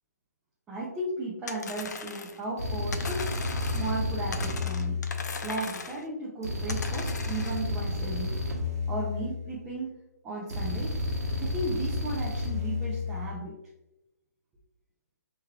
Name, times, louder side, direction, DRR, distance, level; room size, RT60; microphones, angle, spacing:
voice 1, 0.7-3.3 3.6-5.0 5.4-8.4 8.9-10.0 10.2-11.0 11.4-13.6, right 2 dB, 10° right, -6 dB, 0.4 m, -35 dB
sound 1, 1.5-2.4 2.9-4.0 4.3-6.0 6.7-7.6, left 4 dB, 90° left, 0.5 m, -38 dB
sound 2, 2.6-5.7 6.4-9.7 10.5-13.3, left 2 dB, 65° right, 1.0 m, -31 dB
4.4 x 3.2 x 2.3 m, 0.91 s
hypercardioid pair, 165°, 9 cm